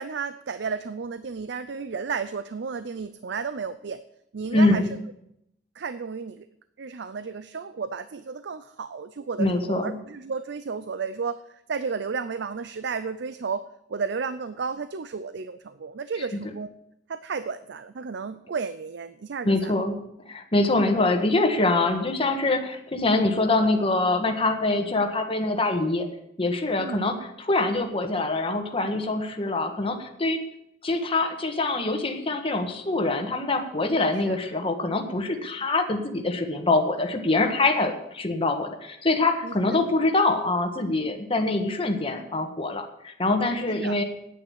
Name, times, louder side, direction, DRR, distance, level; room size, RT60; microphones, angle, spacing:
voice 1, 0.0-4.0 4.3-4.9 5.8-6.5 6.8-11.4 11.7-16.7 17.1-19.7 26.8-27.0 34.1-34.4 39.4-39.8 43.8-44.0, right 5 dB, 65° right, 13 dB, 0.5 m, -33 dB
voice 2, 4.5-4.9 9.4-9.9 19.4-20.0 20.3-26.1 26.4-30.4 30.8-44.0, left 2 dB, 30° left, 4 dB, 1.5 m, -24 dB
9.4 x 8.9 x 8.7 m, 0.78 s
head